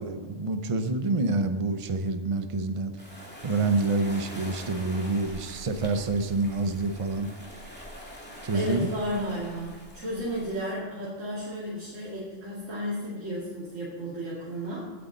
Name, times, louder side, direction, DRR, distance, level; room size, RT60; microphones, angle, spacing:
voice 1, 0.0-2.9 3.4-7.3 8.4-8.9, right 3 dB, 30° right, 8 dB, 0.7 m, -27 dB
sound 1, 3.0-10.7, equal, 10° left, 2.4 m, -44 dB
voice 2, 8.5-14.9, equal, 85° right, -7 dB, 2.7 m, -33 dB
16.5 x 8.5 x 4.0 m, 1.4 s
omnidirectional pair, 1.3 m